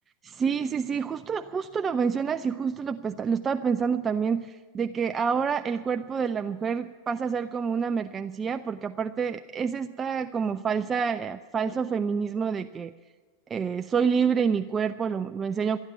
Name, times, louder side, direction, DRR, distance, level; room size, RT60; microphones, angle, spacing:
voice 1, 0.2-12.9 13.5-15.8, right 6 dB, 25° right, 8 dB, 0.4 m, -28 dB
13.5 x 9.6 x 8.5 m, 1.4 s
hypercardioid pair, 105°, 0 cm